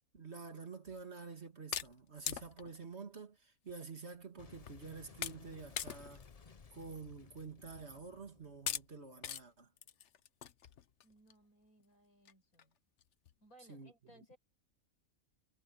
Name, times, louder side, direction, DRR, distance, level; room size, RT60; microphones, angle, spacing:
voice 1, 0.1-6.2 6.7-9.7 13.7-13.9 14.2-14.3, right 4 dB, 50° right, 2.6 m, -49 dB
sound 1, 0.9-1.0 1.7-2.8 3.7-3.8 4.1-4.2 4.7-4.9 5.2-5.5 5.8-6.3 6.7-6.8 7.8-7.9 8.7-8.9 9.2-9.4 9.8-11.3 11.8-11.9 12.3-12.4 12.6-12.7 13.0-13.3, left 9 dB, 60° left, 1.1 m, -42 dB
Boom, 4.4-9.6, left 5 dB, 30° left, 0.8 m, -59 dB
voice 2, 11.0-12.8 13.4-14.4, equal, 90° left, 6.2 m, -64 dB
omnidirectional pair, 1.5 m